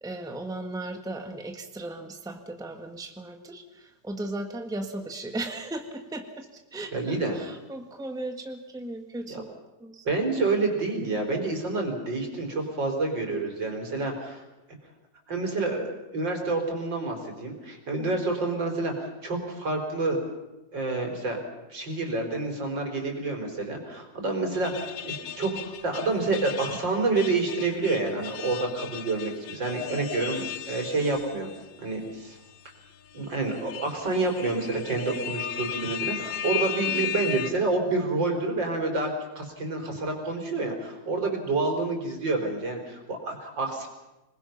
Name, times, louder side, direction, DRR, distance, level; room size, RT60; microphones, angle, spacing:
voice 1, 0.0-6.4 6.7-9.5 9.8-10.3, right 2 dB, ahead, 4 dB, 1.5 m, -36 dB
voice 2, 6.9-7.4 9.3-9.4 10.1-14.4 15.3-15.9 16.1-20.2 20.7-21.4 21.7-31.5 31.8-32.4 33.1-43.9, right 3 dB, 75° right, 2 dB, 4.6 m, -28 dB
sound 1, 24.5-31.6 32.0-32.1 33.1-37.5, left 10 dB, 75° left, 1.7 m, -36 dB
27.0 x 20.0 x 5.9 m, 1.0 s
omnidirectional pair, 2.0 m